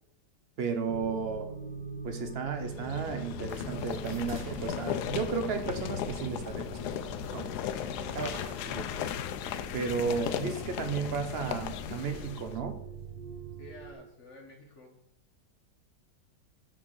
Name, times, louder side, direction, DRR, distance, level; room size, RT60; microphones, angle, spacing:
voice 1, 0.6-1.5 2.0-6.9 7.3-7.5 8.1-8.4 8.7-9.1 9.7-12.8, right 5 dB, 50° right, 7 dB, 0.8 m, -34 dB
sound 1, 0.8-13.9, right 4 dB, 30° right, 2.0 m, -45 dB
sound 2, 2.6-12.6, left 10 dB, 75° left, 1.1 m, -36 dB
sound 3, 3.5-10.6, right 1 dB, 10° right, 1.9 m, -51 dB
voice 2, 7.9-8.3 13.6-15.0, left 1 dB, 45° left, 2 dB, 1.4 m, -51 dB
5.9 x 4.5 x 6.2 m, 0.73 s
omnidirectional pair, 1.9 m